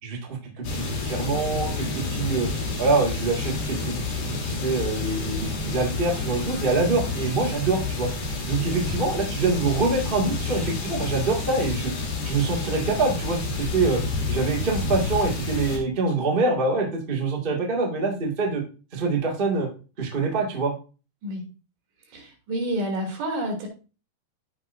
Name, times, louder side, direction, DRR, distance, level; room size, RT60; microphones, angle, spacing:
voice 1, 0.0-2.5 2.8-8.1 8.4-11.9 12.2-14.0 14.3-18.6 18.9-19.7 20.0-20.7, right 3 dB, 30° right, -1 dB, 0.9 m, -25 dB
sound 1, 0.6-15.8, left 3 dB, 55° left, 4.1 m, -29 dB
voice 2, 22.1-23.7, right 1 dB, 80° right, 1 dB, 5.0 m, -29 dB
15.0 x 5.3 x 2.7 m, 0.33 s
omnidirectional pair, 5.0 m